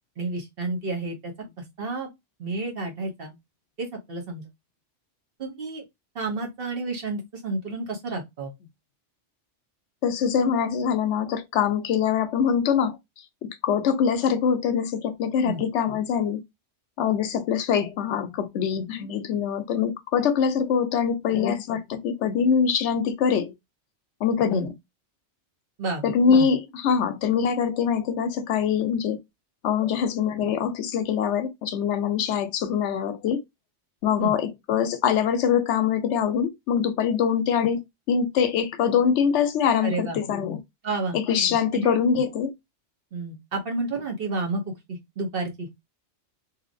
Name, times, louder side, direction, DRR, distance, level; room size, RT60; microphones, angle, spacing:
voice 1, 0.2-1.3 1.8-2.1 2.4-3.3 3.8-4.5 5.4-5.8 6.1-8.5 15.4-15.6 24.5-24.7 25.8-26.1 34.2-34.3 39.8-40.2 40.8-41.2 41.7-42.0 43.1-44.6 44.9-45.7, right 3 dB, 55° right, 1.1 m, -30 dB
voice 2, 10.0-13.0 13.6-16.4 17.0-23.5 24.2-24.7 26.0-29.2 29.6-33.4 34.0-40.6 41.1-42.5, left 7 dB, 75° left, 0.9 m, -24 dB
2.8 x 2.7 x 2.5 m
omnidirectional pair, 1.2 m